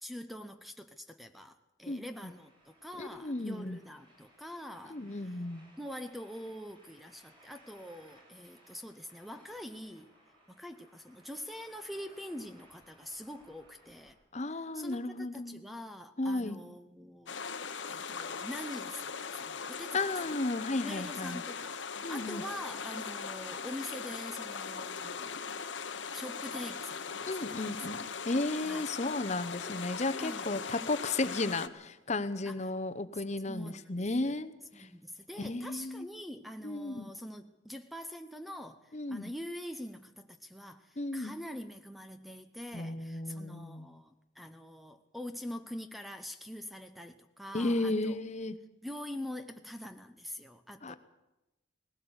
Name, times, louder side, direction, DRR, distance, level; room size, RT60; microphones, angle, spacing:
voice 1, 0.0-5.3 5.8-10.1 10.5-14.2 14.5-17.4 17.9-20.4 20.8-21.8 22.1-25.4 26.1-27.8 28.6-28.9 30.2-30.7 32.5-32.7 33.4-34.4 34.7-48.2 48.8-51.0, left 1 dB, ahead, 8 dB, 0.7 m, -44 dB
sound 1, 2.1-14.1, right 1 dB, 25° right, 7.9 m, -62 dB
voice 2, 3.0-3.8 4.9-5.6 14.3-15.6 16.2-16.6 19.9-21.4 22.0-22.4 27.3-34.9 35.4-36.1 36.6-37.1 38.9-39.3 41.0-41.3 42.7-43.9 47.5-48.5 50.8-51.0, left 2 dB, 35° left, 12 dB, 0.8 m, -34 dB
sound 2, 17.3-31.7, left 6 dB, 65° left, 1.0 m, -40 dB
19.0 x 17.0 x 8.0 m, 1.0 s
head